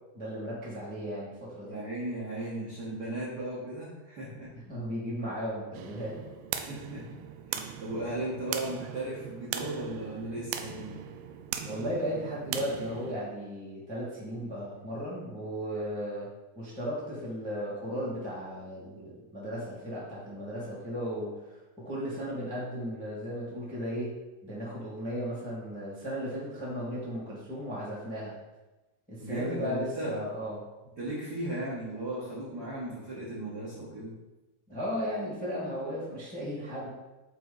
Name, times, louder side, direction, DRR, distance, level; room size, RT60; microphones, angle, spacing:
voice 1, 0.1-1.8 4.7-6.2 11.6-16.3 16.5-24.1 24.4-28.3 29.1-30.6 34.7-36.9, equal, 5° left, -8 dB, 0.7 m, -35 dB
voice 2, 1.6-4.5 6.6-7.1 7.5-11.0 29.2-30.2 31.0-34.1, right 1 dB, 65° right, -8 dB, 0.9 m, -36 dB
sound 1, 5.7-13.2, right 9 dB, 80° right, 2.1 m, -39 dB
9.1 x 3.4 x 3.9 m, 1.1 s
omnidirectional pair, 4.0 m